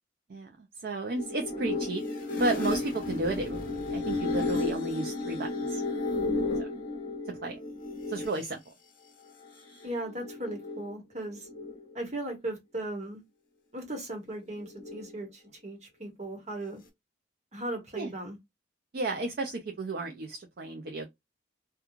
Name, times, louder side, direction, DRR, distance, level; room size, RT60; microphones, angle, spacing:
voice 1, 0.8-2.0 2.4-5.8 7.4-7.6 8.1-8.6 18.0-18.1 18.9-21.1, right 2 dB, 50° right, 0.4 m, -33 dB
sound 1, 1.2-8.5 9.4-10.9 11.3-12.0 14.4-15.2, left 2 dB, 45° left, 1.0 m, -33 dB
voice 2, 9.8-11.5 11.9-13.2 13.7-16.8 17.5-18.4, right 1 dB, 35° right, 1.1 m, -37 dB
2.9 x 2.3 x 2.3 m
head